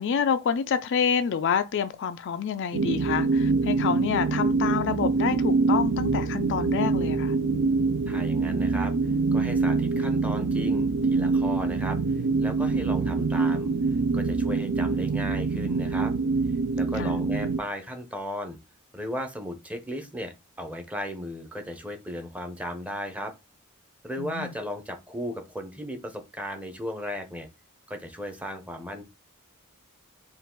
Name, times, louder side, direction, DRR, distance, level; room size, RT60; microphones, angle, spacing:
voice 1, 0.0-7.4 17.0-17.2 24.2-24.5, left 7 dB, 55° left, 0.4 m, -28 dB
sound 1, 2.7-17.6, right 4 dB, 60° right, 0.4 m, -25 dB
voice 2, 8.1-13.7 14.1-16.1 16.8-18.6 18.9-23.3 24.0-27.5 27.9-29.0, equal, 5° right, 0.7 m, -36 dB
4.6 x 2.4 x 3.7 m
head